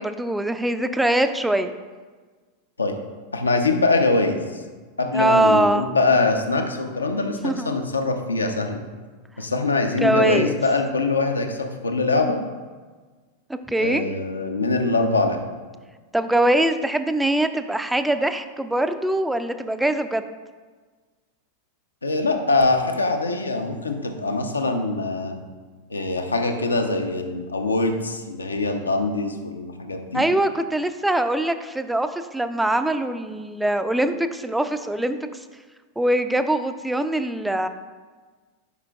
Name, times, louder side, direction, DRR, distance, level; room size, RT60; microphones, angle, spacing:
voice 1, 0.0-1.7 5.1-5.9 7.4-7.7 10.0-10.6 13.5-14.0 16.1-20.2 30.1-35.3 36.0-37.7, right 1 dB, 5° right, 9 dB, 0.3 m, -22 dB
voice 2, 3.3-4.4 5.0-8.8 9.4-12.4 13.8-15.4 22.0-25.4 25.9-30.2, left 3 dB, 75° left, 5 dB, 0.6 m, -23 dB
8.1 x 5.0 x 2.3 m, 1.4 s
figure-of-eight pair, 90°, 0 cm